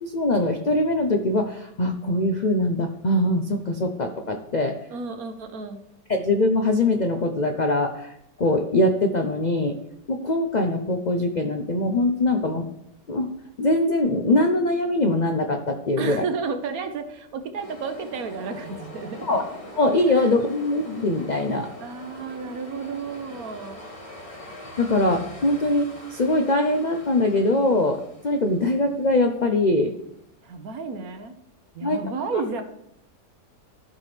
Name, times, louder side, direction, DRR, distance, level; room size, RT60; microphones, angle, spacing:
voice 1, 0.0-4.8 6.1-8.1 8.4-9.8 10.1-12.7 13.1-13.3 13.6-16.2 19.2-19.4 19.7-21.7 24.8-29.9 31.8-32.1, left 2 dB, 70° left, 4 dB, 0.4 m, -22 dB
voice 2, 4.9-5.8 16.0-19.3 20.1-20.3 21.8-23.8 30.4-31.3 31.7-32.6, right 4 dB, 65° right, 7 dB, 1.3 m, -32 dB
sound 1, 17.6-30.5, left 1 dB, 20° left, 1.4 m, -43 dB
13.5 x 6.0 x 3.3 m, 0.77 s
omnidirectional pair, 1.8 m